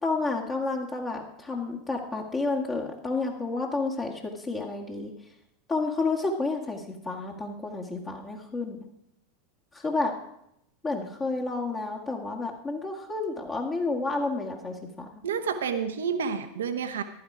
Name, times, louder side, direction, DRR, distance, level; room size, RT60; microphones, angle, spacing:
voice 1, 0.0-5.1 5.7-8.8 9.7-10.1 10.8-15.1, left 3 dB, 25° left, 0 dB, 2.0 m, -30 dB
voice 2, 15.2-17.0, right 6 dB, 75° right, 8 dB, 1.1 m, -29 dB
14.5 x 11.5 x 4.9 m, 0.77 s
hypercardioid pair, 85°, 0 cm